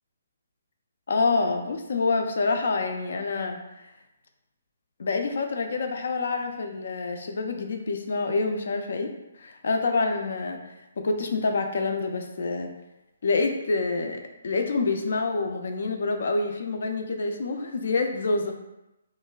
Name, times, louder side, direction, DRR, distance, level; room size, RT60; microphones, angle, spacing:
voice 1, 1.1-3.9 5.0-12.7 13.2-18.5, left 3 dB, 50° left, 5 dB, 0.3 m, -27 dB
3.0 x 2.5 x 2.2 m, 0.95 s
hypercardioid pair, 180°, 0 cm